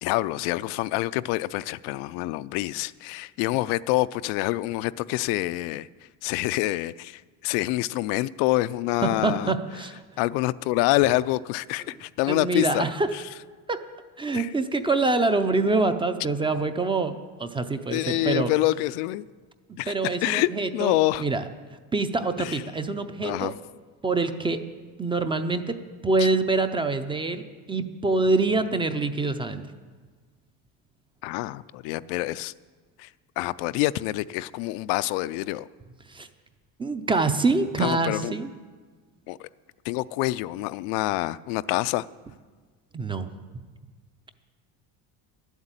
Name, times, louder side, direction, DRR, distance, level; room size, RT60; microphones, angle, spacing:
voice 1, 0.0-5.9 6.2-9.5 10.2-13.2 14.3-14.5 17.9-19.2 19.8-21.2 22.4-22.6 23.2-23.5 31.2-32.5 33.0-33.1 33.4-35.7 37.8-38.3 39.3-39.5 39.9-42.1, left 17 dB, 85° left, 0.5 m, -26 dB
voice 2, 9.0-10.0 12.3-13.1 13.7-13.8 14.2-18.5 19.9-20.9 21.2-21.4 21.9-23.5 24.0-24.6 25.0-25.8 26.0-29.6 36.1-36.3 36.8-38.5 42.9-43.3, right 3 dB, 15° right, 0.4 m, -25 dB
12.0 x 8.1 x 8.9 m
cardioid pair, 150°, 40 cm